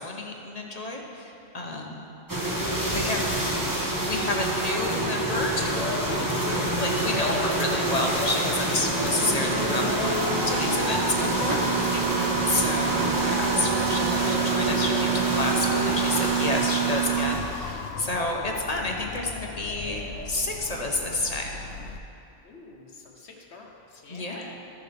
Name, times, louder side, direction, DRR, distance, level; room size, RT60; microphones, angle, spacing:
voice 1, 0.0-2.1 2.5-2.6 2.9-3.3 4.0-21.6 24.1-24.5, left 2 dB, 35° left, 0 dB, 0.8 m, -30 dB
sound 1, 2.3-17.9, right 1 dB, 20° right, 1.0 m, -27 dB
voice 2, 2.8-3.7 11.9-12.1 22.4-24.5, left 3 dB, 60° left, 1 dB, 1.3 m, -46 dB
Motor vehicle (road) / Siren, 5.2-22.0, left 5 dB, 85° left, 0.9 m, -37 dB
sound 2, 8.7-17.4, right 12 dB, 80° right, 1.1 m, -29 dB
14.0 x 6.9 x 3.3 m, 2.7 s
omnidirectional pair, 1.3 m